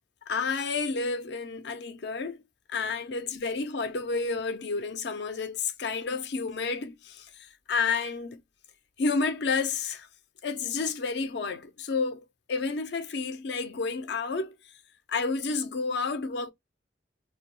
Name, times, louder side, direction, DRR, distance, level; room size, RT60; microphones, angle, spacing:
voice 1, 0.3-2.4 2.7-8.4 9.0-10.1 10.4-14.5 15.1-16.5, left 4 dB, 60° left, 0.4 m, -30 dB
2.3 x 2.1 x 3.0 m
head